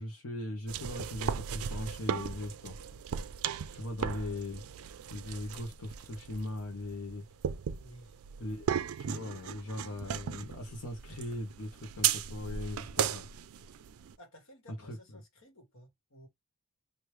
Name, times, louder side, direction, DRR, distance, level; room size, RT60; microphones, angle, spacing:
voice 1, 0.0-3.3 3.7-7.2 8.4-8.7 9.0-13.3 14.8-15.2, left 1 dB, 80° left, 0.8 m, -40 dB
sound 1, 0.7-14.1, right 8 dB, 75° right, 0.4 m, -37 dB
voice 2, 7.8-8.5 14.2-16.3, equal, 65° left, 1.5 m, -56 dB
3.1 x 2.6 x 3.1 m
head